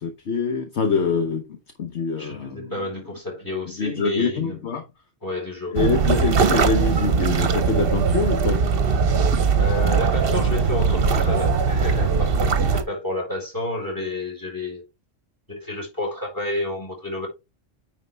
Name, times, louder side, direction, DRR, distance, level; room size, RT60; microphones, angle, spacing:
voice 1, 0.0-2.7 3.8-4.8 5.7-8.6 8.8-9.0 9.3-9.4, left 5 dB, 60° left, 1.2 m, -25 dB
voice 2, 2.2-4.6 5.2-5.8 9.6-14.8 15.5-17.3, left 2 dB, 15° left, 4.2 m, -30 dB
sound 1, 5.7-12.8, right 5 dB, 50° right, 1.0 m, -20 dB
9.4 x 4.7 x 3.4 m
omnidirectional pair, 1.3 m